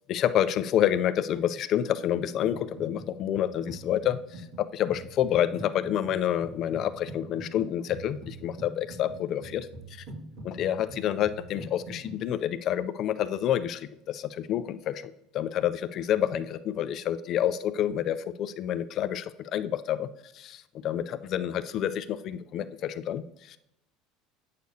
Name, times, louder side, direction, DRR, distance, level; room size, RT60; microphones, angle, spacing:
voice 1, 0.1-10.0 10.4-23.6, left 10 dB, 40° left, 11 dB, 0.3 m, -28 dB
sound 1, 2.4-3.1 3.3-12.2, right 1 dB, 40° right, 2.0 m, -44 dB
9.2 x 6.6 x 2.7 m, 0.82 s
cardioid pair, 165°, 0 cm